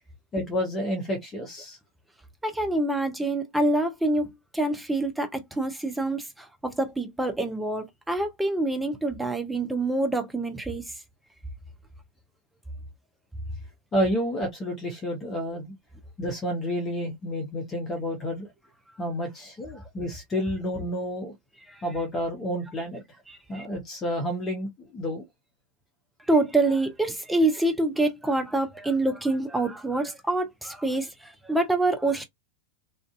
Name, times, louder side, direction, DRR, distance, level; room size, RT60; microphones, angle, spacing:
voice 1, 0.3-1.8 13.9-15.7 16.2-18.5 19.0-21.3 21.8-23.0 23.5-25.2, equal, 20° left, 0.8 m, -30 dB
voice 2, 2.4-10.8 23.3-23.7 26.3-32.2, right 2 dB, 5° right, 0.7 m, -26 dB
2.5 x 2.3 x 2.3 m
figure-of-eight pair, 90°, 0 cm